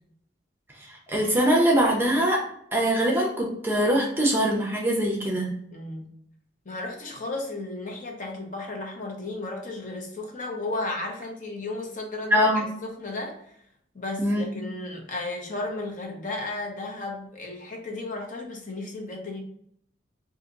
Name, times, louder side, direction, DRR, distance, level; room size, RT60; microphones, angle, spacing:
voice 1, 1.1-2.4 2.7-5.5 12.3-12.6 14.2-14.4, equal, 10° right, -2 dB, 0.6 m, -22 dB
voice 2, 5.7-6.1 6.6-13.6 13.9-19.4, left 2 dB, 40° left, 0 dB, 0.6 m, -34 dB
2.7 x 2.5 x 3.7 m, 0.70 s
head